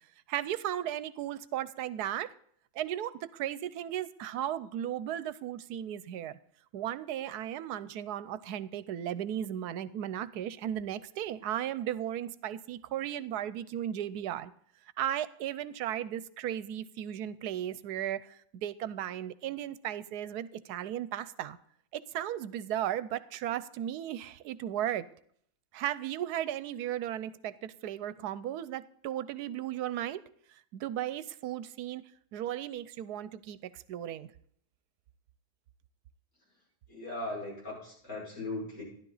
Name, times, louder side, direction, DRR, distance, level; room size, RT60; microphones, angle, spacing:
voice 1, 0.3-2.3 2.7-6.4 6.7-14.5 15.0-21.6 21.9-25.1 25.7-30.2 30.7-32.0 32.3-34.3, right 11 dB, 85° right, 1.2 m, -35 dB
voice 2, 36.9-38.8, left 2 dB, 65° left, 6.3 m, -38 dB
13.0 x 11.0 x 4.0 m
omnidirectional pair, 1.7 m